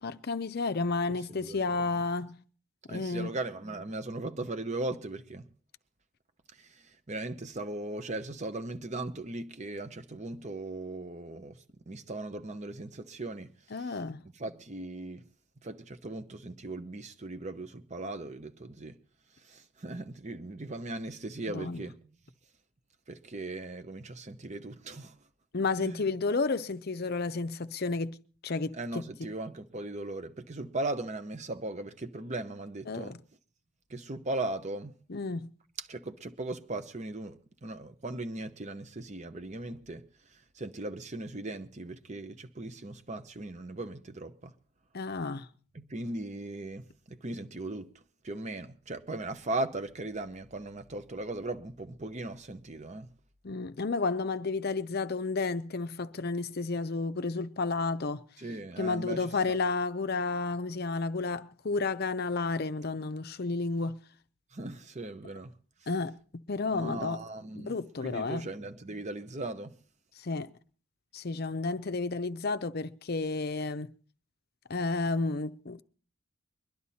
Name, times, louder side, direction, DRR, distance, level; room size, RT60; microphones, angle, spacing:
voice 1, 0.0-2.4 2.9-3.3 13.7-14.2 21.5-21.8 25.5-28.2 28.4-29.0 32.9-33.2 35.1-35.5 44.9-45.5 53.4-58.2 58.8-64.0 65.9-66.2 66.5-67.2 67.5-68.5 70.2-70.5 71.1-73.9 74.7-75.8, left 3 dB, 45° left, 0.6 m, -31 dB
voice 2, 1.1-1.8 2.9-5.5 6.5-15.3 15.6-19.0 19.4-22.0 23.1-25.2 25.8-26.1 28.7-33.2 33.9-34.9 35.8-44.5 45.7-53.1 58.4-59.6 64.5-65.5 66.7-67.7 68.0-69.7, right 2 dB, 30° right, 0.9 m, -38 dB
22.0 x 11.0 x 4.2 m
head